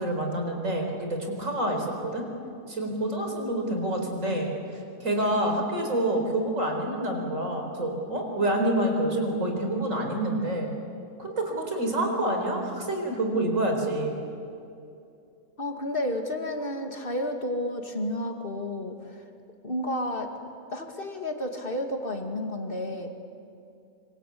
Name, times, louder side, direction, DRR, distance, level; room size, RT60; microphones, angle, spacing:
voice 1, 0.0-2.2 2.7-10.7 11.2-14.2, right 1 dB, 60° right, 3 dB, 4.8 m, -27 dB
voice 2, 15.6-19.2 19.6-20.3 20.7-23.1, left 1 dB, 40° left, 4 dB, 2.6 m, -31 dB
26.5 x 25.5 x 8.6 m, 2.6 s
omnidirectional pair, 1.5 m